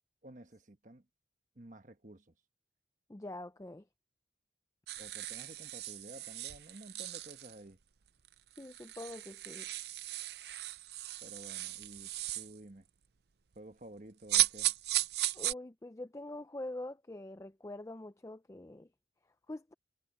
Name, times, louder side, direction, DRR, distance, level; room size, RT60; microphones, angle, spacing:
voice 1, 0.2-1.1 1.5-2.3 5.0-7.8 11.2-12.9 13.5-14.7, right 1 dB, 45° right, 1.3 m, -52 dB
voice 2, 3.1-3.9 8.6-9.7 15.3-18.9 19.5-19.7, left 1 dB, 15° left, 0.4 m, -44 dB
sound 1, 4.9-7.6 8.2-8.3 8.6-12.5 14.3-15.5, right 15 dB, 65° right, 0.6 m, -36 dB
head